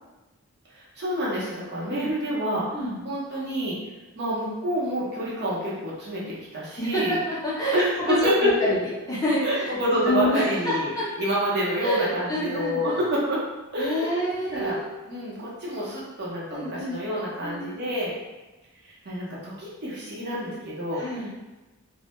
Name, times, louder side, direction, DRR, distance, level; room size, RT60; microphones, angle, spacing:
voice 1, 0.7-3.8 4.2-7.2 7.7-8.7 9.4-10.9 11.2-13.4 13.7-14.2 14.5-14.8 15.1-18.2 18.8-21.0, equal, 50° right, -6 dB, 0.7 m, -27 dB
voice 2, 6.8-8.2 8.4-11.1 11.8-13.0 13.8-14.9 16.5-17.0 17.4-17.8 21.0-21.3, equal, 15° left, -7 dB, 0.5 m, -28 dB
2.1 x 2.1 x 2.9 m, 1.1 s
head